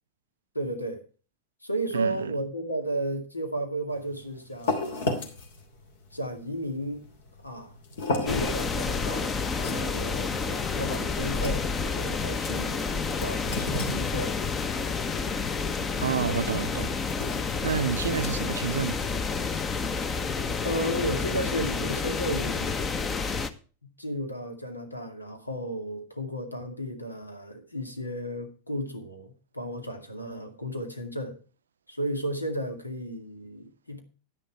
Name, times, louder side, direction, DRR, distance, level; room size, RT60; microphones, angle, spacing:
voice 1, 0.5-1.0 1.6-5.4 6.1-7.0 7.4-7.8 8.2-14.4 20.6-22.8 23.8-31.4 31.9-34.0, right 1 dB, 85° left, 2.3 m, -33 dB
voice 2, 1.9-2.4 16.0-17.0 17.6-19.0, right 7 dB, 70° right, 0.6 m, -29 dB
sound 1, 3.9-18.9, left 2 dB, 60° left, 2.9 m, -36 dB
sound 2, 8.3-23.5, left 5 dB, 20° left, 1.0 m, -29 dB
10.5 x 10.5 x 4.6 m
figure-of-eight pair, 90°, 0 cm